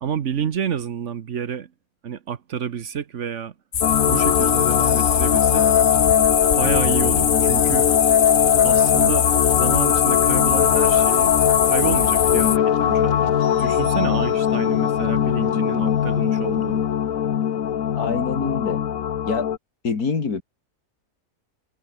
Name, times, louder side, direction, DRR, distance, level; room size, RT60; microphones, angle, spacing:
voice 1, 0.0-1.7 2.0-3.5 4.1-5.7 6.5-7.9 8.6-9.3 9.5-11.4 11.6-13.3 13.6-16.9, right 8 dB, 55° right, 1.2 m, -29 dB
sound 1, 3.7-12.6, left 7 dB, 45° left, 1.1 m, -22 dB
sound 2, 3.8-19.6, left 9 dB, 65° left, 1.4 m, -20 dB
voice 2, 17.9-18.8 19.2-19.5 19.8-20.4, left 5 dB, 80° left, 3.0 m, -25 dB
omnidirectional pair, 1.6 m